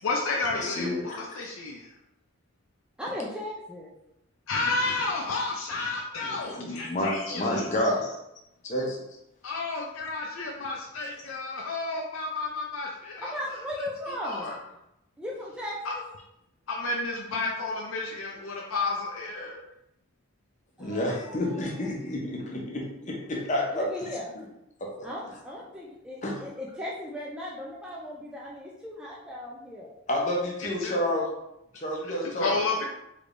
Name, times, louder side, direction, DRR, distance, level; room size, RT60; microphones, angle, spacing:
voice 1, 0.0-1.9 4.5-7.7 9.4-13.6 14.1-14.6 15.8-15.9 16.7-19.6 30.8-30.9 32.0-32.9, left 3 dB, 80° left, -1 dB, 0.4 m, -31 dB
voice 2, 0.6-1.2 6.2-8.2 8.6-9.0 20.8-24.1 24.8-25.1 26.2-26.4 30.1-31.3 31.7-32.6, left 1 dB, 35° left, -1 dB, 0.7 m, -29 dB
voice 3, 3.0-3.9 13.2-14.5 15.2-16.0 20.8-21.9 23.7-24.3 25.0-29.9, left 1 dB, 5° right, -5 dB, 0.4 m, -37 dB
3.3 x 3.2 x 2.5 m, 0.84 s
head